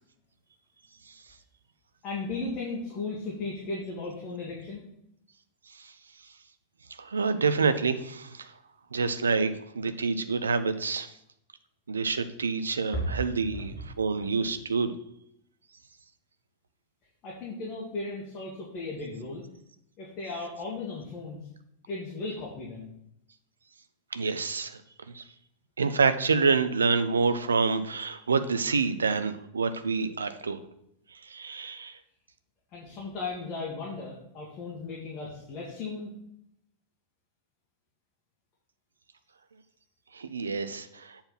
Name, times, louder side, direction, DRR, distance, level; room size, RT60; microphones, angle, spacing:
voice 1, 2.0-4.8 12.9-13.2 13.5-13.8 17.2-19.4 20.0-21.4 21.9-22.9 32.7-36.1, left 3 dB, 35° left, -4 dB, 1.9 m, -36 dB
voice 2, 7.0-8.5 8.9-11.1 11.9-14.9 24.1-24.8 25.1-25.2 25.8-30.6 31.2-32.0 40.1-41.2, right 4 dB, 70° right, 11 dB, 0.5 m, -27 dB
7.8 x 4.3 x 5.6 m, 0.77 s
figure-of-eight pair, 90°, 0 cm